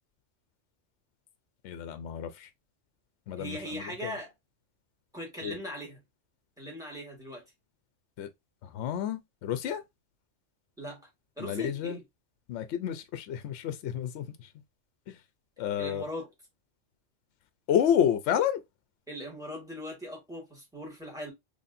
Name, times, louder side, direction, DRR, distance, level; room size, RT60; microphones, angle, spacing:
voice 1, 1.6-2.5 3.3-4.2 5.4-5.6 8.2-8.3 8.6-9.8 11.4-12.0 12.5-14.5 15.1-15.2 15.6-16.0 17.7-18.6, left 9 dB, 70° left, 0.8 m, -30 dB
voice 2, 3.4-4.3 5.1-6.0 6.6-7.4 10.8-11.1 11.4-12.0 15.8-16.3 19.1-21.3, equal, 5° right, 2.0 m, -39 dB
4.0 x 3.2 x 2.6 m
omnidirectional pair, 1.3 m